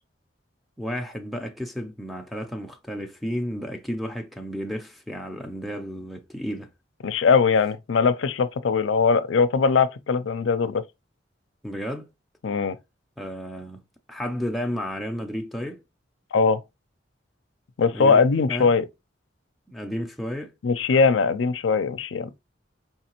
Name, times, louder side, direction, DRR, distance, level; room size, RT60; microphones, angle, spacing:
voice 1, 0.8-6.7 11.6-12.1 13.2-13.8 14.1-15.8 17.9-18.7 19.7-20.5, equal, ahead, 0.5 m, -32 dB
voice 2, 7.0-10.8 12.4-12.8 16.3-16.6 17.8-18.9 20.6-22.3, left 5 dB, 85° left, 0.5 m, -21 dB
4.6 x 3.2 x 2.9 m
head